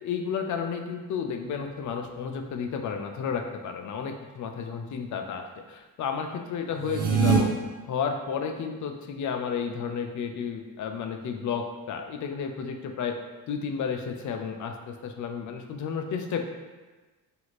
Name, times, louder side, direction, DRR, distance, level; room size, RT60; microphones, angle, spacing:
voice 1, 0.0-7.5 7.9-13.2 13.5-16.4, left 6 dB, 50° left, 5 dB, 0.5 m, -32 dB
sound 1, 6.8-7.4, right 6 dB, 75° right, 0.7 m, -22 dB
2.8 x 2.4 x 3.0 m, 1.3 s
supercardioid pair, 70°, 38 cm